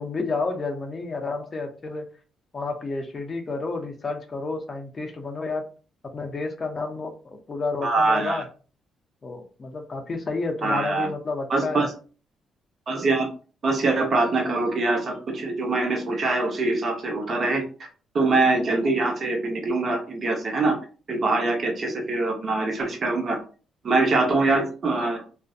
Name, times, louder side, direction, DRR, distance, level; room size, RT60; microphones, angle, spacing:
voice 1, 0.0-2.1 2.5-5.6 6.1-7.1 7.5-8.5 9.2-11.9, left 3 dB, 35° left, 3 dB, 0.5 m, -30 dB
voice 2, 7.8-8.4 10.6-11.1 11.5-11.9 12.9-13.3 13.6-17.9 18.1-20.8 21.1-23.4 23.8-25.2, right 3 dB, 45° right, 2 dB, 0.8 m, -23 dB
2.5 x 2.1 x 2.4 m, 0.37 s
cardioid pair, 90°, 0 cm